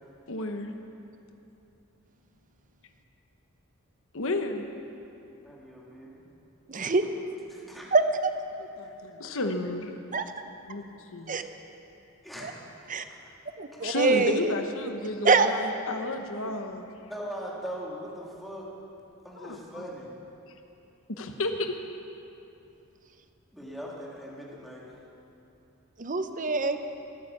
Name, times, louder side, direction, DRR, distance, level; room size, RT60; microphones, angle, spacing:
voice 1, 0.3-0.7 4.1-4.7 6.8-6.9 8.6-10.0 10.7-11.4 13.8-16.9 19.4-19.9 21.1-21.7, left 2 dB, 65° left, 5 dB, 1.2 m, -32 dB
voice 2, 5.4-6.2 7.5-7.8 8.6-8.7 12.2-12.5 13.1-13.2 13.7-14.2 17.1-18.6 19.2-20.1 23.5-24.8, equal, ahead, -5 dB, 2.7 m, -40 dB
voice 3, 6.7-7.0 7.9-8.0 10.1-10.2 11.3-11.4 12.4-12.5 12.9-13.0 13.6-14.5 15.2-15.5 26.0-26.8, right 4 dB, 40° right, 8 dB, 0.8 m, -24 dB
17.5 x 10.0 x 7.3 m, 2.8 s
head